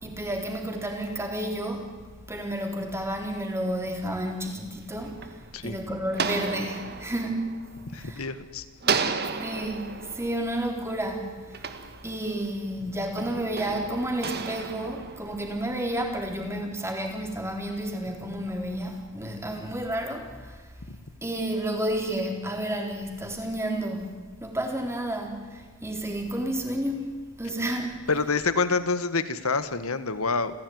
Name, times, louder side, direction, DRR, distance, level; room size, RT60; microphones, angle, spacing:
voice 1, 0.0-1.9 2.3-5.4 5.6-7.5 8.0-8.3 8.8-8.9 9.2-11.6 12.0-20.6 21.2-24.1 24.4-28.0, right 1 dB, 10° right, 2 dB, 3.9 m, -31 dB
sound 1, 4.6-8.4 8.8-12.6 13.2-15.8, right 5 dB, 50° right, 1.7 m, -34 dB
voice 2, 7.9-8.6 8.9-9.2 20.9-21.0 28.1-30.5, left 4 dB, 75° left, 12 dB, 1.6 m, -27 dB
28.0 x 16.0 x 9.6 m, 1.4 s
head